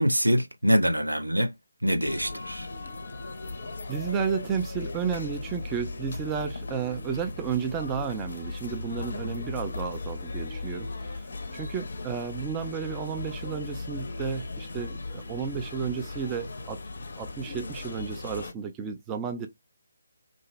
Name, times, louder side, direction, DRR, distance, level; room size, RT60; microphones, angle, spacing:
voice 1, 0.0-1.5 1.8-2.7, equal, 85° right, 0.6 m, -24 dB
sound 1, 2.0-18.5, left 3 dB, 55° left, 0.5 m, -37 dB
voice 2, 3.9-10.9 11.1-11.3 11.5-16.8 17.2-19.5, right 7 dB, 15° right, 0.3 m, -32 dB
2.5 x 2.0 x 3.0 m
figure-of-eight pair, 150°, 0 cm